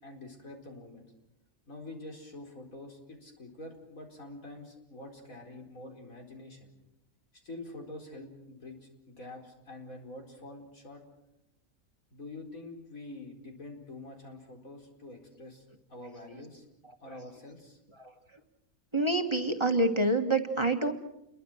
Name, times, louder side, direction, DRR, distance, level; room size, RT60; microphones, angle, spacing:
voice 1, 0.0-1.1 1.7-6.7 7.4-11.0 12.1-16.6 17.0-17.8, left 2 dB, 85° left, 2 dB, 5.0 m, -46 dB
voice 2, 18.9-20.9, right 2 dB, 20° right, 5 dB, 1.7 m, -27 dB
28.5 x 22.5 x 6.5 m, 0.86 s
omnidirectional pair, 1.4 m